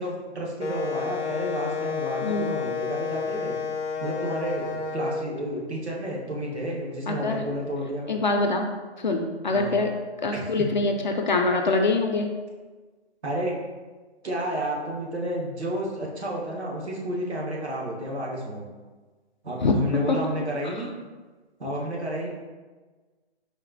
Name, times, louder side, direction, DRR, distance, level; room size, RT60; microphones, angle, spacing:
voice 1, 0.0-3.6 4.0-8.1 9.5-9.8 10.3-10.7 13.2-13.5 14.2-18.6 19.4-20.9 21.6-22.3, equal, 75° right, -3 dB, 1.4 m, -31 dB
Wind instrument woodwind instrument, 0.6-5.2, left 5 dB, 90° left, 0.6 m, -30 dB
voice 2, 7.1-7.4 8.1-8.6 9.0-9.9 10.2-12.3 19.6-19.7 20.1-20.2, left 3 dB, 45° left, 3 dB, 0.4 m, -24 dB
4.2 x 2.6 x 3.9 m, 1.3 s
figure-of-eight pair, 145°, 34 cm